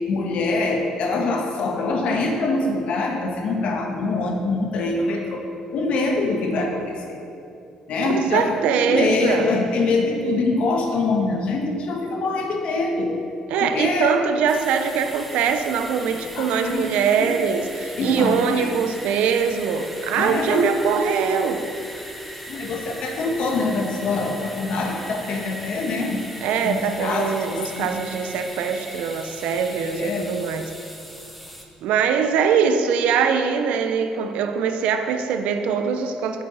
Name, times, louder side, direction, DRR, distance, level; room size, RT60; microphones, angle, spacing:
voice 1, 0.0-5.4 5.7-7.2 7.9-13.2 13.6-14.2 16.1-16.9 17.2-17.3 17.9-18.7 20.2-20.6 22.5-26.2 26.6-27.9 29.7-30.3, left 3 dB, 65° left, 2 dB, 1.4 m, -24 dB
voice 2, 8.1-9.5 13.5-21.7 26.4-30.7 31.8-36.4, right 6 dB, 85° right, 7 dB, 0.7 m, -22 dB
sound 1, 14.5-31.6, equal, ahead, 1.2 m, -39 dB
7.9 x 7.3 x 5.5 m, 2.7 s
cardioid pair, 95°, 2 cm